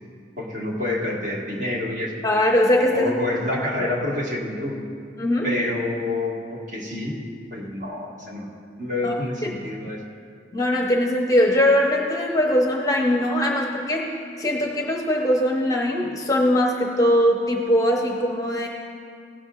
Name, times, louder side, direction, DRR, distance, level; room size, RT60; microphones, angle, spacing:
voice 1, 0.4-2.1 2.9-4.9 5.4-7.2 7.5-8.5 8.8-10.0, left 2 dB, 45° right, -3 dB, 1.6 m, -28 dB
voice 2, 2.2-3.1 3.5-3.9 5.2-5.5 9.0-9.2 10.5-14.1 14.4-18.7, left 1 dB, 20° left, 0 dB, 0.8 m, -21 dB
16.0 x 11.0 x 2.4 m, 2.2 s
head